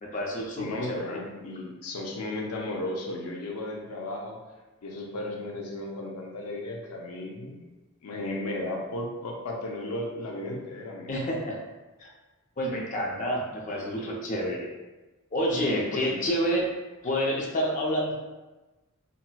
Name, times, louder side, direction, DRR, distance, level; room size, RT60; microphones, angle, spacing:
voice 1, 0.0-1.2 11.1-11.6 12.0-12.1 12.6-14.7 15.3-16.7 17.0-18.1, equal, 35° left, -3 dB, 0.5 m, -28 dB
voice 2, 0.6-4.4 4.8-7.6 8.0-11.1 15.7-16.2, left 1 dB, 90° left, 0 dB, 0.5 m, -35 dB
4.0 x 2.0 x 2.2 m, 1.2 s
head